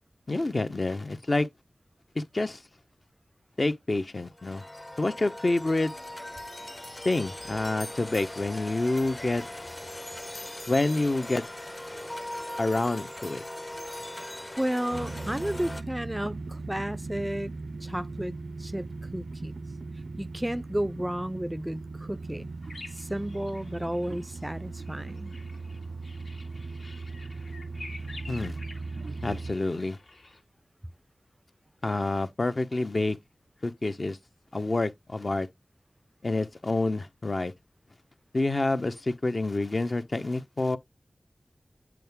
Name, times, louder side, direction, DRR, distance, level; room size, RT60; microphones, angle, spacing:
voice 1, 0.3-1.5 2.1-2.6 3.6-4.6 5.0-5.9 7.0-9.4 10.7-11.4 12.6-13.4 28.3-28.6 29.2-30.0 31.8-33.2 33.6-34.2 34.5-35.5 36.2-37.5 38.3-40.8, left 2 dB, 50° left, 1.0 m, -28 dB
sound 1, 4.3-15.8, left 1 dB, 30° left, 0.9 m, -40 dB
voice 2, 14.6-17.6 17.8-18.3 18.6-19.5 20.2-22.5 22.9-25.4, equal, 10° right, 0.4 m, -32 dB
sound 2, 14.9-29.5, right 3 dB, 85° right, 0.4 m, -38 dB
sound 3, 22.6-30.4, left 2 dB, 85° left, 2.4 m, -49 dB
7.8 x 4.7 x 3.6 m
cardioid pair, 40°, 0 cm